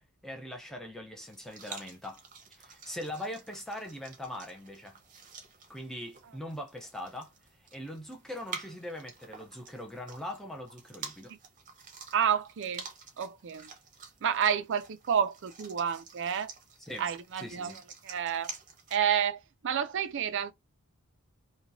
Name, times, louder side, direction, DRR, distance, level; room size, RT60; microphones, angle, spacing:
voice 1, 0.0-2.2 2.5-5.0 5.7-7.3 7.7-11.3 16.8-17.1 17.4-17.8, left 1 dB, ahead, 0.6 m, -41 dB
sound 1, 1.3-19.0, right 5 dB, 35° right, 0.8 m, -49 dB
voice 2, 12.1-12.8 13.2-13.7 14.2-16.5 17.0-17.7 18.0-18.5 18.9-20.5, right 8 dB, 55° right, 0.4 m, -30 dB
2.9 x 2.2 x 2.6 m
head